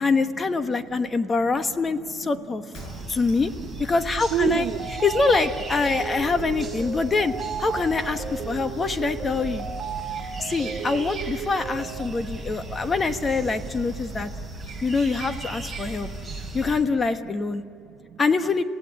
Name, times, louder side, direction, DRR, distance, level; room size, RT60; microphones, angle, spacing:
voice 1, 0.0-2.6 3.1-3.5 3.8-4.7 5.0-7.3 7.6-9.6 10.4-14.3 14.8-16.1 16.5-17.6 18.2-18.6, left 4 dB, 25° left, 9 dB, 1.2 m, -24 dB
voice 2, 0.6-2.5 2.8-3.4 4.3-4.8 5.8-5.9 8.4-8.8 9.7-10.7 12.2-13.1 13.4-13.8 14.1-14.9 16.1-16.7 17.2-17.3 17.8-18.2, right 11 dB, 60° right, 12 dB, 0.8 m, -35 dB
Shatter, 2.7-3.7, left 2 dB, 50° left, 6.5 m, -48 dB
sound 1, 2.7-16.8, right 2 dB, ahead, 4.8 m, -36 dB
sound 2, 4.6-12.1, right 7 dB, 40° right, 2.0 m, -35 dB
27.5 x 17.0 x 9.7 m, 2.6 s
cardioid pair, 125°, 0 cm